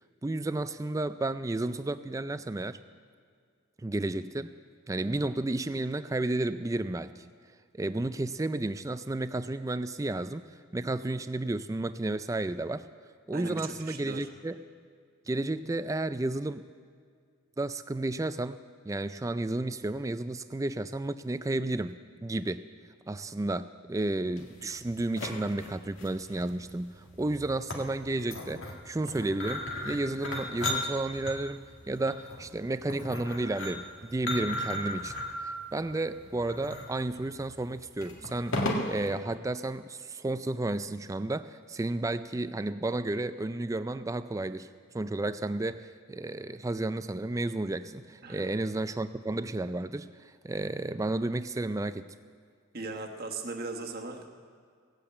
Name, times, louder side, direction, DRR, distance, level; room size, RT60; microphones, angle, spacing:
voice 1, 0.2-2.8 3.8-4.5 4.9-7.2 7.7-10.5 10.7-12.9 13.3-14.6 15.3-16.6 17.6-18.6 18.9-22.6 23.1-35.1 35.4-44.7 44.9-52.1, right 2 dB, 15° right, 13 dB, 0.3 m, -32 dB
voice 2, 13.3-14.3 48.2-48.5 52.7-54.3, right 3 dB, 45° right, 2 dB, 1.3 m, -38 dB
sound 1, 24.4-39.1, left 1 dB, 60° left, 1.7 m, -36 dB
17.0 x 8.6 x 8.2 m, 2.1 s
head